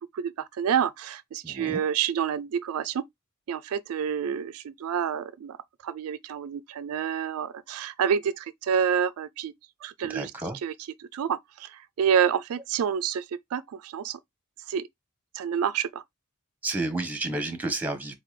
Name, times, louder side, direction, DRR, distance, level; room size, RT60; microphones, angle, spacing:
voice 1, 0.0-3.0 3.5-5.6 5.8-9.5 9.8-10.3 10.6-10.7 11.0-14.2 14.7-14.9 15.3-16.0, right 8 dB, 75° right, 0.3 m, -28 dB
voice 2, 1.4-1.8 10.1-10.6 16.6-18.1, right 2 dB, 10° right, 1.0 m, -31 dB
4.3 x 3.6 x 3.1 m
head